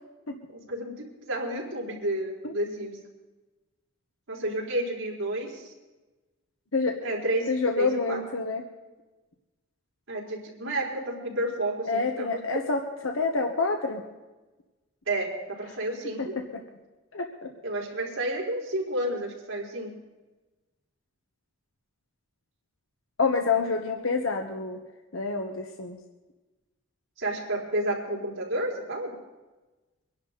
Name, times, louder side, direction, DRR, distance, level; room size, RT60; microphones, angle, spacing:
voice 1, 0.5-3.0 4.3-5.7 7.0-7.5 7.8-8.2 10.1-12.6 15.1-15.3 15.6-16.3 17.6-19.9 27.2-29.2, right 1 dB, 80° right, -3 dB, 3.9 m, -31 dB
voice 2, 7.5-8.6 11.9-14.0 16.2-16.6 17.1-17.5 23.2-24.8 25.1-26.0, left 4 dB, 90° left, 3 dB, 1.2 m, -28 dB
23.5 x 11.0 x 4.0 m, 1.2 s
head